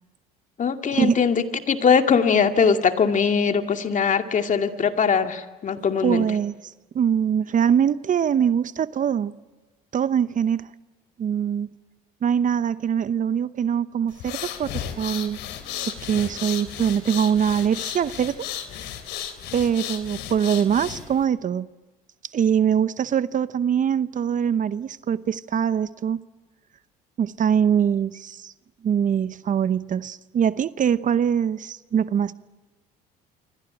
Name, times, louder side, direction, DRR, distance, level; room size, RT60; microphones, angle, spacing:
voice 1, 0.6-6.3, left 6 dB, 40° left, 2.4 m, -21 dB
voice 2, 6.0-6.5 6.9-9.3 9.9-10.7 11.2-11.7 12.2-15.4 15.8-18.4 19.5-21.7 22.3-26.2 27.2-28.5 28.8-32.3, right 8 dB, 45° right, 0.9 m, -23 dB
sound 1, 14.1-21.2, left 10 dB, 65° left, 3.3 m, -34 dB
27.0 x 24.5 x 9.0 m
supercardioid pair, 75°, 19 cm